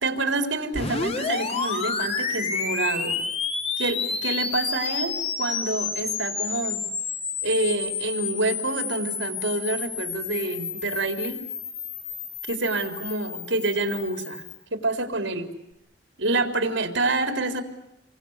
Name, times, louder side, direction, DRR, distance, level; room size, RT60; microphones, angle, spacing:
voice 1, 0.0-3.2 3.8-6.9 7.4-11.4 12.5-14.4 14.7-15.5 16.2-17.6, right 2 dB, 80° right, 7 dB, 3.9 m, -27 dB
sound 1, 0.7-14.6, left 5 dB, 35° left, 2.7 m, -30 dB
29.0 x 24.0 x 8.2 m, 0.84 s
head